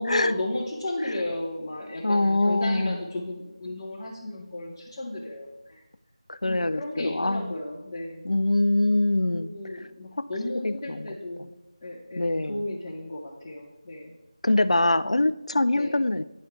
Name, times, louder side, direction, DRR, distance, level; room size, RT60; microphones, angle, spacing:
voice 1, 0.0-5.8 6.4-8.3 9.3-11.5 11.8-14.1 14.8-15.2 15.7-16.0, left 1 dB, 20° left, -10 dB, 1.1 m, -34 dB
voice 2, 2.0-3.0 6.3-7.5 8.2-9.5 10.2-10.3 10.6-11.1 12.2-12.6 14.4-16.3, left 2 dB, 85° left, 13 dB, 0.3 m, -24 dB
9.8 x 5.5 x 3.2 m, 0.94 s
figure-of-eight pair, 170°, 3 cm